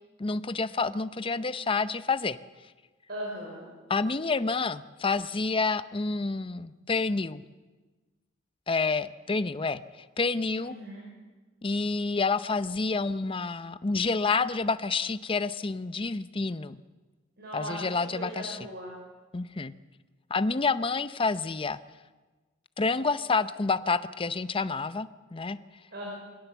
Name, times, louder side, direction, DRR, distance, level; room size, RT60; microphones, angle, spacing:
voice 1, 0.2-2.4 3.9-7.4 8.7-10.7 11.6-16.8 17.5-18.6 19.3-19.7 20.3-21.8 22.8-25.6, left 4 dB, 30° left, 13 dB, 0.6 m, -28 dB
voice 2, 3.1-3.7 10.6-11.0 17.4-18.9 25.9-26.1, equal, 60° right, -3 dB, 5.3 m, -38 dB
22.0 x 17.0 x 7.1 m, 1.3 s
head